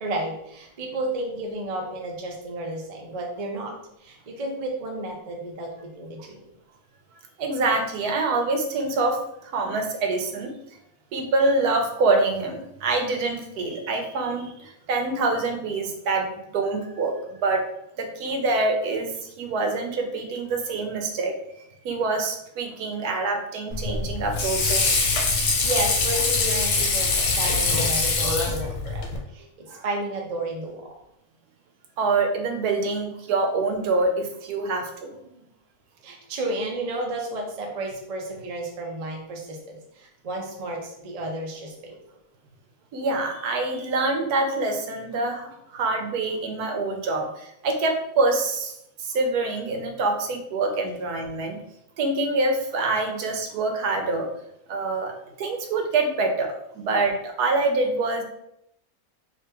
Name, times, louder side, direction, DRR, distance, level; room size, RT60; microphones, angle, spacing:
voice 1, 0.0-6.4 25.0-25.1 25.4-31.0 35.2-35.5 36.0-41.9, right 2 dB, 55° right, 0 dB, 0.4 m, -32 dB
voice 2, 7.4-10.5 11.1-17.7 18.0-21.4 21.8-25.0 32.0-35.1 42.9-48.7 49.0-51.6 52.0-54.3 54.7-55.1 55.4-58.2, right 3 dB, 80° right, 4 dB, 1.1 m, -25 dB
Water / Sink (filling or washing), 23.7-29.2, left 3 dB, 80° left, 1.2 m, -23 dB
3.4 x 2.9 x 2.9 m, 0.79 s
omnidirectional pair, 1.6 m